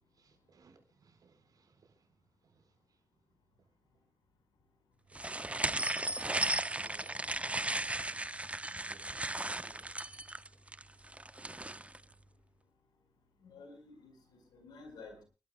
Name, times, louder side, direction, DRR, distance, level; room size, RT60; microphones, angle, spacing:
voice 1, 0.1-4.0 5.1-5.2 6.8-7.9 8.8-10.1 10.5-11.1 14.9-15.0, right 5 dB, 65° right, 4.7 m, -64 dB
sound 1, 5.1-12.0, right 2 dB, 20° right, 0.8 m, -36 dB
voice 2, 13.4-15.2, left 3 dB, 80° left, 4.9 m, -52 dB
29.0 x 12.0 x 2.3 m
supercardioid pair, 40°, 7 cm